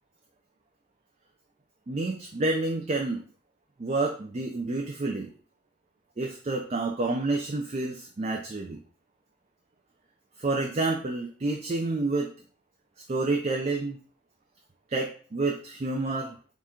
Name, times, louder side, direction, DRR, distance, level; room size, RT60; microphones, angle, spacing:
voice 1, 1.9-3.2 3.8-5.3 6.2-8.8 10.4-12.3 13.1-14.0 14.9-16.4, right 2 dB, 35° right, 1 dB, 0.4 m, -29 dB
3.8 x 2.4 x 4.2 m, 0.42 s
head